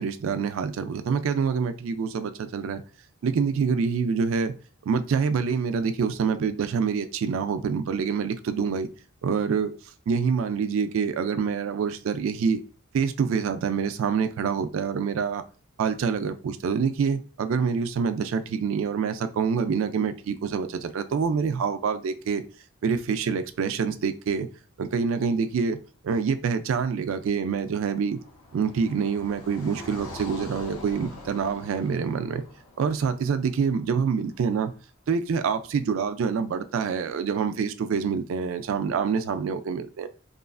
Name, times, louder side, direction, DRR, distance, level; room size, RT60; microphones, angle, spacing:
voice 1, 0.0-2.8 3.2-4.6 4.9-8.9 9.2-9.7 10.1-12.6 12.9-15.4 15.8-22.4 22.8-24.5 24.8-25.8 26.0-28.2 28.5-32.4 32.8-34.7 35.1-40.1, right 6 dB, 65° right, 11 dB, 0.3 m, -26 dB
Car passing by, 27.0-34.2, left 1 dB, 75° left, 0.7 m, -44 dB
3.0 x 2.4 x 2.4 m, 0.38 s
head